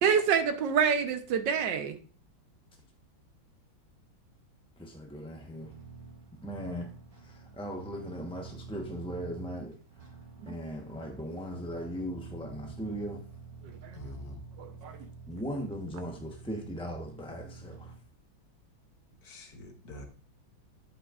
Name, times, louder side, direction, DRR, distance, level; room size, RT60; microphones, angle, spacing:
voice 1, 0.0-2.0 10.4-10.5 13.6-13.7 14.6-15.0, right 7 dB, 65° right, 8 dB, 1.4 m, -27 dB
voice 2, 4.8-5.7 6.4-6.9 7.2-9.7 10.5-13.2 15.3-17.9, equal, 5° left, 2 dB, 0.5 m, -38 dB
sound 1, 5.4-18.0, right 4 dB, 80° right, 2.3 m, -48 dB
voice 3, 13.9-14.4 19.2-20.1, left 1 dB, 55° left, 4 dB, 1.5 m, -45 dB
11.0 x 7.9 x 2.4 m, 0.39 s
omnidirectional pair, 2.2 m